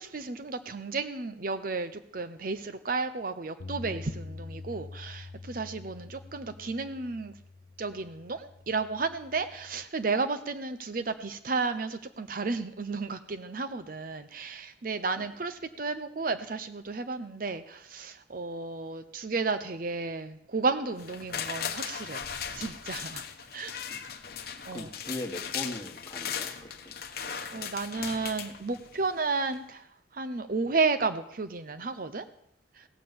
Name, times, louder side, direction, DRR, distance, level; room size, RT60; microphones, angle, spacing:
voice 1, 0.0-7.3 7.8-22.3 22.5-23.2 23.5-23.8 24.4-24.9 27.2-29.9 30.1-32.3 32.8-32.9, right 4 dB, 50° right, 10 dB, 0.7 m, -33 dB
Bass guitar, 3.6-9.8, left 3 dB, 70° left, 0.6 m, -45 dB
sound 1, 21.0-29.1 29.5-29.6, left 7 dB, 55° left, 1.0 m, -38 dB
voice 2, 24.7-26.9, left 1 dB, 15° left, 2 dB, 1.6 m, -39 dB
16.5 x 7.4 x 7.0 m, 0.73 s
head